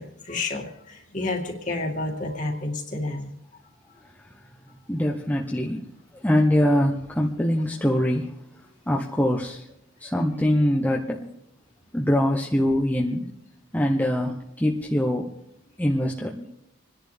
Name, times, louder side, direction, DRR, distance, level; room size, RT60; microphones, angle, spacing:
voice 1, 0.0-3.3, left 2 dB, 40° left, 1 dB, 2.3 m, -30 dB
voice 2, 4.9-5.8 6.1-8.3 8.9-9.6 10.0-11.3 11.9-13.3 13.7-15.3 15.8-16.5, left 1 dB, 10° left, -2 dB, 0.9 m, -23 dB
27.5 x 10.5 x 3.5 m, 0.83 s
head